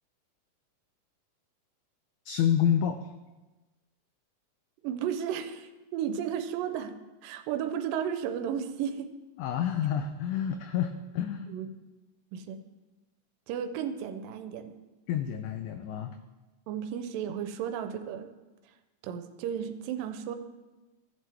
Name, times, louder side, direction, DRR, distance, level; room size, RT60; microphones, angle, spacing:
voice 1, 2.3-3.1 9.4-11.5 15.1-16.2, left 9 dB, 85° left, 8 dB, 1.7 m, -28 dB
voice 2, 4.8-7.0 7.2-9.1 11.5-11.7 12.3-12.6 13.5-14.7 16.7-18.3 19.0-20.4, right 8 dB, 85° right, 8 dB, 2.3 m, -33 dB
14.0 x 7.5 x 3.4 m, 1.2 s
omnidirectional pair, 4.0 m